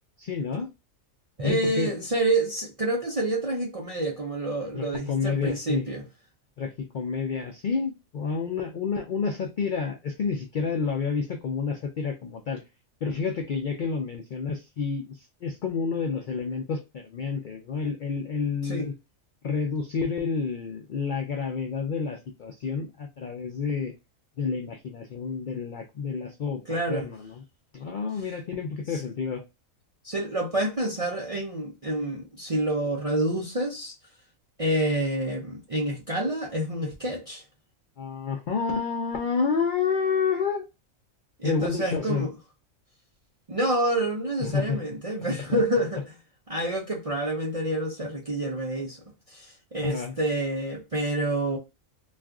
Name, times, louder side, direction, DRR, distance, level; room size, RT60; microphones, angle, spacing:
voice 1, 0.2-0.7 1.4-2.0 4.7-5.9 6.6-12.6 13.0-18.9 19.4-23.9 24.4-26.6 26.9-27.4 27.7-29.4 38.0-40.6 41.4-42.3 44.4-44.8 49.8-50.1, left 5 dB, 75° left, 0.4 m, -29 dB
voice 2, 1.4-6.0 18.6-18.9 26.7-27.1 28.9-29.0 30.0-33.9 34.6-37.4 41.4-42.3 43.5-46.0 46.5-49.0 49.3-51.6, right 1 dB, 45° right, 0.4 m, -28 dB
2.5 x 2.4 x 3.4 m
omnidirectional pair, 1.4 m